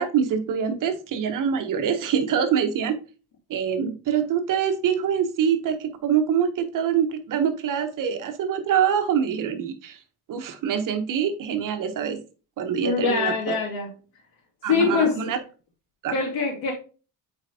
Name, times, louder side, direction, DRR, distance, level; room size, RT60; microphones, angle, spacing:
voice 1, 0.0-3.0 3.5-10.0 10.3-12.2 12.6-13.6 14.6-15.4 16.0-16.1, right 8 dB, 50° right, 7 dB, 0.9 m, -25 dB
voice 2, 12.8-13.9 14.7-15.2 16.1-16.7, left 5 dB, 60° left, -6 dB, 2.5 m, -23 dB
8.7 x 4.2 x 2.7 m, 0.35 s
cardioid pair, 155°, 41 cm